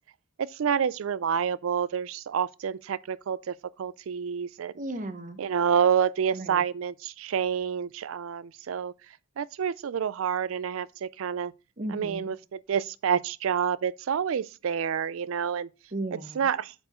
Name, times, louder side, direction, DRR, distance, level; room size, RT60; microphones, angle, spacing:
voice 1, 0.4-4.7 5.4-8.9 9.4-11.5 11.9-15.7 16.4-16.7, right 7 dB, 80° right, 0.4 m, -28 dB
voice 2, 4.8-5.4 6.3-6.6 11.8-12.3 15.9-16.5, right 1 dB, 40° right, 0.8 m, -35 dB
8.0 x 4.5 x 4.2 m
head